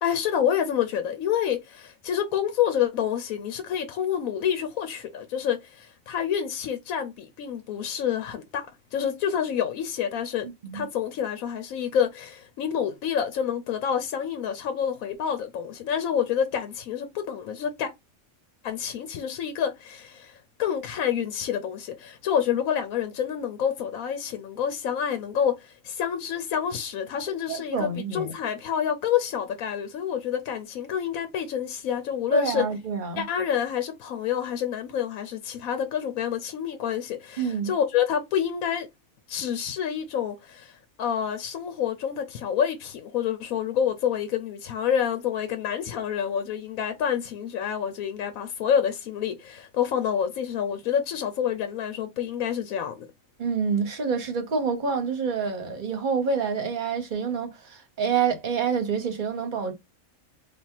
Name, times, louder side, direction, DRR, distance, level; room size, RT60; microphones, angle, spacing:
voice 1, 0.0-10.5 10.7-17.9 18.6-32.6 33.2-38.9 39.3-52.9, left 8 dB, 85° left, 1.1 m, -28 dB
voice 2, 27.5-28.3 32.3-33.3 37.4-37.7 53.4-59.7, right 5 dB, 40° right, 0.9 m, -27 dB
3.5 x 2.5 x 4.3 m
omnidirectional pair, 1.4 m